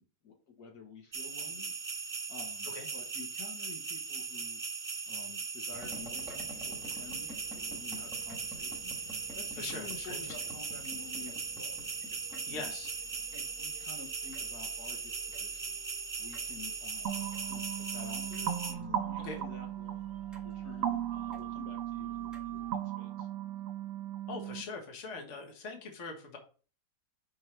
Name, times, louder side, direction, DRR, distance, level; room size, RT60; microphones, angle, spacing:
voice 1, 0.0-4.6 5.1-11.9 12.2-12.7 13.3-15.8 16.2-17.2 17.5-20.0 20.4-23.3, left 5 dB, 70° left, 2 dB, 1.7 m, -51 dB
sound 1, 1.1-18.7, right 5 dB, 40° right, 0.5 m, -39 dB
sound 2, 5.7-22.7, equal, ahead, 1.3 m, -52 dB
voice 2, 9.6-10.3 12.5-12.9 19.2-19.4 24.3-26.4, left 3 dB, 50° left, 3 dB, 1.6 m, -42 dB
sound 3, 17.1-24.6, right 11 dB, 60° right, 1.0 m, -37 dB
5.4 x 5.0 x 4.4 m, 0.38 s
omnidirectional pair, 1.7 m